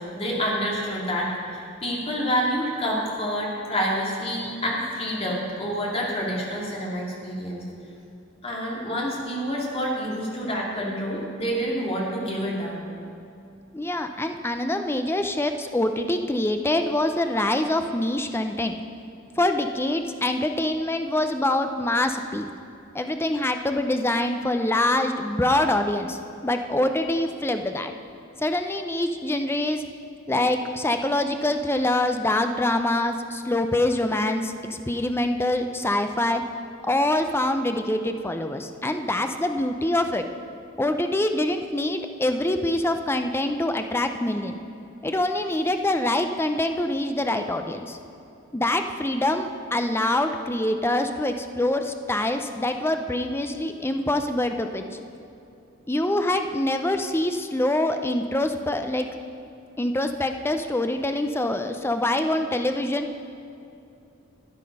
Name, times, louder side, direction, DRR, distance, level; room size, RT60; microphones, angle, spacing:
voice 1, 0.0-7.6 8.4-12.8, equal, 30° left, -3 dB, 2.5 m, -28 dB
voice 2, 13.7-18.8 19.4-22.5 22.9-27.9 28.4-29.8 30.3-36.4 36.8-40.3 40.8-44.6 45.0-48.0 48.5-54.8 55.9-59.1 59.8-63.1, left 1 dB, 10° left, 7 dB, 0.5 m, -25 dB
12.5 x 9.7 x 5.4 m, 2.7 s
head